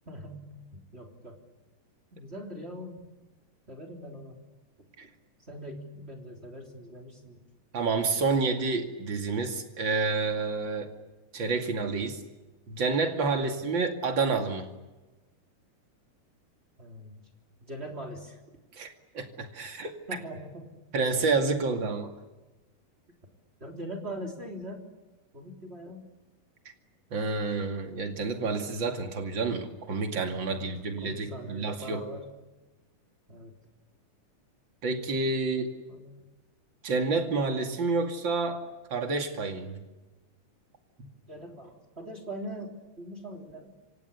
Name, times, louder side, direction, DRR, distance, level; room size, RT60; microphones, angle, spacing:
voice 1, 0.1-0.6 0.9-1.4 2.1-3.1 3.7-4.4 5.5-7.4 13.4-13.6 16.8-17.3 17.6-18.4 20.1-20.8 21.2-21.3 23.6-24.9 25.3-26.0 30.5-30.7 31.0-32.3 33.3-33.5 35.4-36.3 41.3-43.7, equal, 20° right, 2 dB, 3.4 m, -42 dB
voice 2, 7.7-10.9 11.3-12.2 12.7-14.7 18.8-19.9 20.9-22.1 27.1-32.0 34.8-35.7 36.8-38.6 38.9-39.8, right 4 dB, 40° right, 5 dB, 2.7 m, -29 dB
29.5 x 26.0 x 7.0 m, 1.2 s
omnidirectional pair, 3.8 m